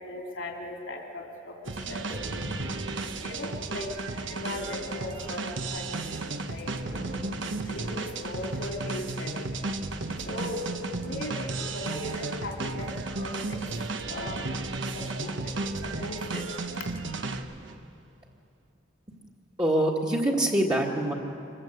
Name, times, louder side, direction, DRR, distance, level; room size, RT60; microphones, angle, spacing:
voice 1, 0.0-2.1 3.0-4.0 4.3-6.7 7.6-9.5 10.3-13.6 14.1-14.4 14.9-16.5, left 2 dB, 90° left, 0 dB, 3.3 m, -38 dB
sound 1, 1.6-17.8, right 3 dB, 75° right, 1.2 m, -34 dB
sound 2, 2.1-4.0 4.5-5.8 6.8-8.6 9.9-12.3 13.9-16.1 16.4-16.5, equal, 50° right, 3.5 m, -43 dB
voice 2, 19.6-21.1, right 1 dB, 20° right, -4 dB, 1.7 m, -24 dB
27.0 x 21.0 x 8.1 m, 2.7 s
head